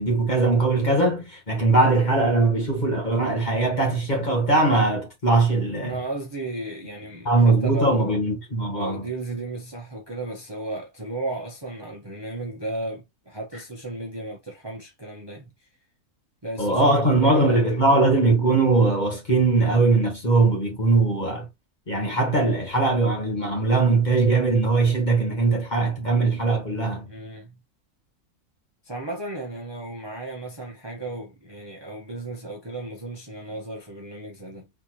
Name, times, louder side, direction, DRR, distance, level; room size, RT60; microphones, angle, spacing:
voice 1, 0.0-5.9 7.3-9.1 16.6-21.5 21.9-27.1, right 3 dB, 30° left, 1.9 m, -21 dB
voice 2, 5.8-8.2 8.7-15.7 16.4-17.7 27.1-27.6 28.8-34.7, right 2 dB, 20° right, 1.1 m, -34 dB
4.7 x 3.5 x 3.0 m
omnidirectional pair, 1.6 m